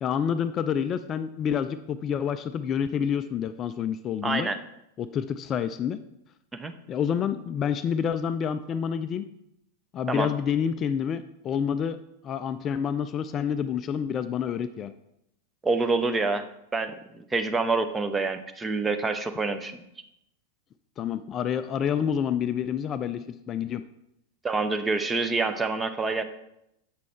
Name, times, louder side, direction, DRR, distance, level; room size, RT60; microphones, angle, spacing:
voice 1, 0.0-4.5 5.0-6.0 6.9-9.3 9.9-12.0 12.2-14.9 21.0-23.8, left 8 dB, 30° left, 11 dB, 0.4 m, -28 dB
voice 2, 4.2-4.6 6.5-6.7 10.1-10.3 15.6-16.5 16.7-19.8 24.4-26.2, right 3 dB, 15° right, 8 dB, 0.7 m, -27 dB
7.7 x 6.2 x 4.3 m, 0.81 s
figure-of-eight pair, 90°, 0 cm